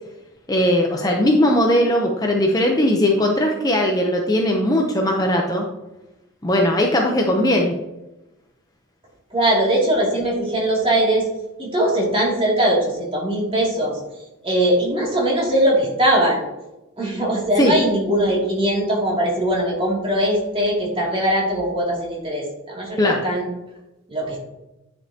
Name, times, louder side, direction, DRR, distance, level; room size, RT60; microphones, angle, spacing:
voice 1, 0.5-5.6 6.4-7.7 17.6-17.7 23.0-23.2, left 1 dB, 20° left, 1 dB, 0.7 m, -19 dB
voice 2, 9.3-11.3 11.6-14.0 14.4-16.4 17.0-23.5 24.1-24.4, right 1 dB, 30° right, -4 dB, 2.5 m, -20 dB
10.0 x 5.3 x 2.8 m, 0.96 s
head